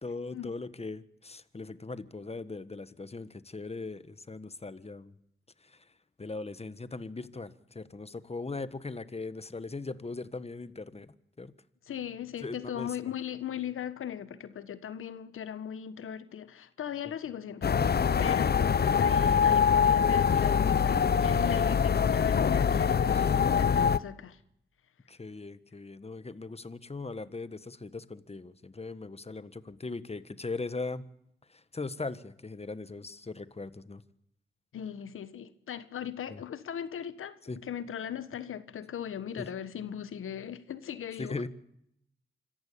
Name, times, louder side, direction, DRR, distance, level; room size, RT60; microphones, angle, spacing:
voice 1, 0.0-5.1 5.6-5.8 6.2-11.5 12.4-12.9 23.1-23.3 25.1-31.0 31.5-34.0 36.3-36.4 37.5-37.6 39.4-39.5 41.2-41.5, left 3 dB, 30° left, 1.5 m, -39 dB
voice 2, 11.9-17.7 18.2-24.4 34.7-41.3, left 9 dB, 80° left, 1.3 m, -38 dB
sound 1, 17.6-24.0, left 7 dB, 50° left, 0.7 m, -24 dB
26.0 x 14.5 x 8.6 m
supercardioid pair, 40°, 21 cm